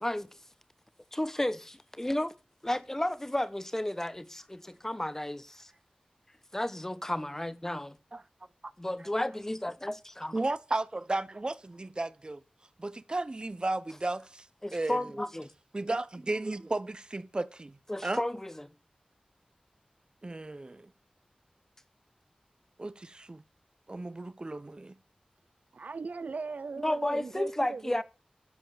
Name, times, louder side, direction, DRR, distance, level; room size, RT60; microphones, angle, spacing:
voice 1, 1.1-2.3 2.6-5.7 6.5-8.0 8.8-10.3 14.6-15.5 17.9-18.7 26.8-28.0, left 1 dB, 15° left, 1.1 m, -32 dB
voice 2, 10.3-12.4 12.8-14.4 14.7-15.0 15.7-17.8 18.0-18.2 20.2-20.9 22.8-23.4 23.9-24.9, right 2 dB, 35° right, 0.8 m, -34 dB
voice 3, 25.7-28.0, right 4 dB, 80° right, 0.6 m, -39 dB
13.5 x 7.7 x 6.8 m
wide cardioid pair, 75°, 3 cm